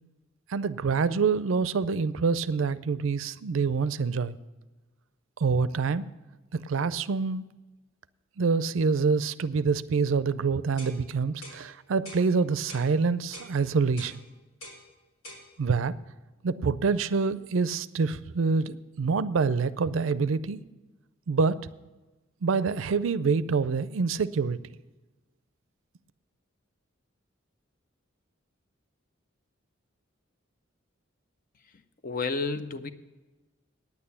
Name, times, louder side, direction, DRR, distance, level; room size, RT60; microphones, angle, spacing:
voice 1, 0.5-4.4 5.4-6.1 6.5-7.5 8.4-14.2 15.6-15.9 16.4-20.6 21.3-21.6 22.4-24.6, right 5 dB, 75° right, 16 dB, 0.4 m, -26 dB
sound 1, 10.8-11.0 11.4-11.6 12.0-12.3 12.7-12.9 13.3-13.5 14.0-14.2 14.6-14.8 15.2-15.4, left 1 dB, 90° left, 2.6 m, -44 dB
voice 2, 32.0-32.9, left 4 dB, 45° left, 11 dB, 0.6 m, -30 dB
9.6 x 8.8 x 7.0 m, 1.2 s
head